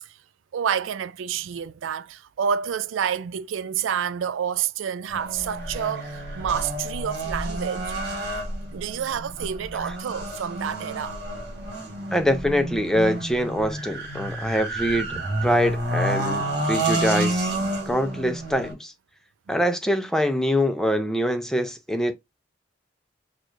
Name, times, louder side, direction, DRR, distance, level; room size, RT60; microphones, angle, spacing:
voice 1, 0.5-7.9 8.7-11.2 19.5-19.6, right 8 dB, 85° right, 0.4 m, -29 dB
sound 1, 5.1-18.7, right 1 dB, 55° right, 1.8 m, -29 dB
voice 2, 12.1-17.5 17.9-18.9 19.5-22.1, equal, 5° left, 0.4 m, -24 dB
6.1 x 2.3 x 2.5 m
head